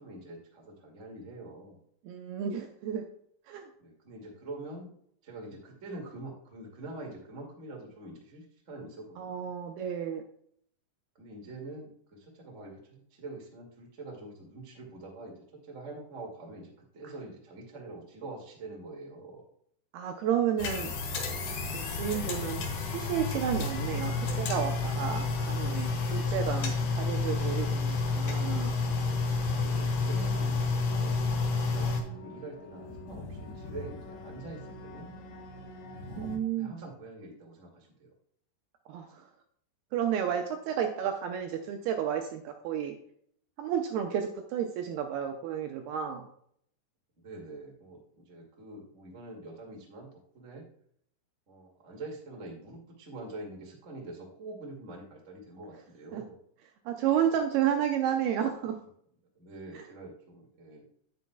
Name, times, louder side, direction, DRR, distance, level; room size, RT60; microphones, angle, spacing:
voice 1, 0.0-1.8 3.8-4.9 5.2-9.5 11.1-19.4 26.4-26.5 29.5-35.1 36.0-38.1 47.2-50.6 51.5-56.4 59.3-61.0, right 2 dB, 60° right, -1 dB, 0.7 m, -45 dB
voice 2, 2.0-3.0 3.5-3.7 9.2-10.2 19.9-20.9 21.7-28.7 36.2-36.8 38.9-39.3 39.9-43.0 43.6-46.3 56.1-56.2 56.9-58.8 59.7-59.8, right 9 dB, 80° right, 4 dB, 2.3 m, -31 dB
sound 1, 20.6-32.0, left 3 dB, 65° left, 2.7 m, -30 dB
sound 2, 30.9-36.4, left 2 dB, 85° left, 3.5 m, -45 dB
9.4 x 9.3 x 2.3 m, 0.66 s
omnidirectional pair, 5.2 m